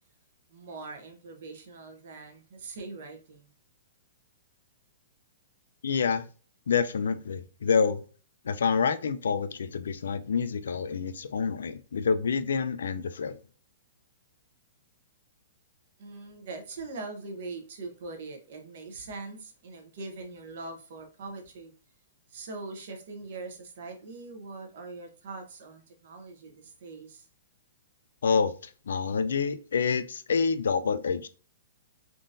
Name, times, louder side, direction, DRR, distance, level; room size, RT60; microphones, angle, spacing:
voice 1, 0.5-3.5 16.0-21.7 22.3-27.3, right 3 dB, 45° right, 0.7 m, -42 dB
voice 2, 5.8-6.2 6.7-8.0 8.4-13.4 28.2-28.5 28.9-31.3, left 5 dB, 85° left, 0.4 m, -27 dB
3.6 x 2.5 x 2.5 m
hypercardioid pair, 180°, 0 cm